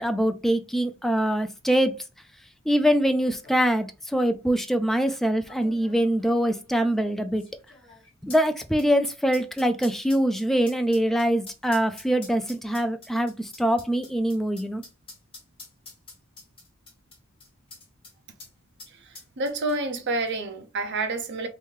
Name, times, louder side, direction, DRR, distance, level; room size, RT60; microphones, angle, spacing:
voice 1, 0.0-1.9 2.7-7.4 8.2-14.8, equal, ahead, 0.3 m, -24 dB
sound 1, 2.9-3.0 3.2-3.6 4.4-4.5 5.5-18.1 18.4-18.5 18.8-20.0 20.3-20.4, left 3 dB, 25° left, 1.4 m, -47 dB
voice 2, 19.4-21.5, right 2 dB, 55° right, 0.8 m, -28 dB
3.1 x 2.7 x 3.5 m
head